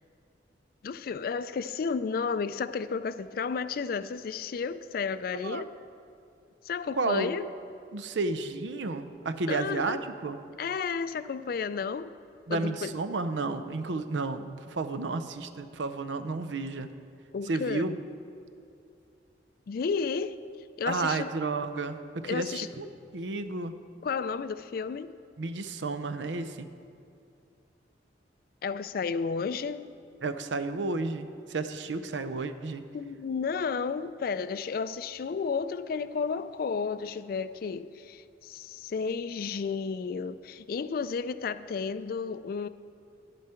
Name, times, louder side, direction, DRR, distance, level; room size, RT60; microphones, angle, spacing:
voice 1, 0.8-5.7 6.7-7.4 9.5-10.0 10.6-12.1 12.5-12.9 17.3-17.9 19.7-20.4 20.8-21.3 22.2-22.7 24.0-25.2 28.6-29.9 32.9-42.7, left 5 dB, 55° left, 0.3 m, -32 dB
voice 2, 5.3-5.6 6.9-7.3 7.9-10.4 12.5-16.9 17.4-18.0 20.9-22.9 23.1-23.7 25.4-26.7 30.2-32.8, right 3 dB, 80° right, 0.6 m, -32 dB
11.0 x 11.0 x 4.4 m
head